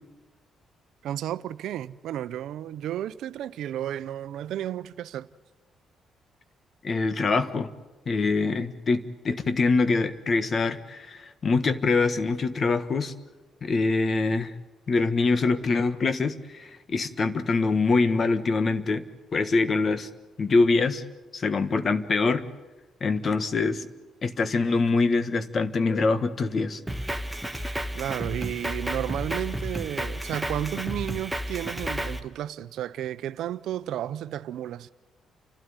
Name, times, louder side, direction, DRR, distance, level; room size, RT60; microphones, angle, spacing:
voice 1, 1.0-5.3 27.9-34.9, right 11 dB, 80° right, 0.6 m, -32 dB
voice 2, 6.8-7.7 8.1-13.1 13.6-14.5 14.9-19.0 19.3-20.1 20.4-21.0 21.3-22.4 23.0-23.9 24.2-26.8, left 3 dB, 45° left, 1.4 m, -24 dB
Drum kit, 26.9-32.2, equal, ahead, 1.5 m, -32 dB
30.0 x 12.5 x 9.7 m
cardioid pair, 90°, 0 cm